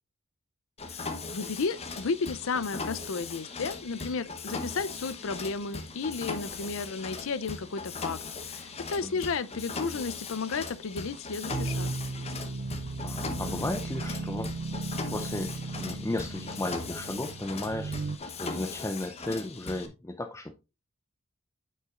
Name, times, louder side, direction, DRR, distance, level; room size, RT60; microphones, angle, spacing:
Mechanisms, 0.8-19.9, left 4 dB, 30° left, 0.9 m, -39 dB
voice 1, 1.3-11.9, left 4 dB, 65° left, 0.5 m, -33 dB
sound 1, 11.5-18.2, right 3 dB, 45° right, 0.4 m, -36 dB
voice 2, 13.0-14.5 15.1-18.0 18.4-20.5, left 1 dB, 15° left, 0.5 m, -34 dB
9.2 x 5.6 x 2.4 m
head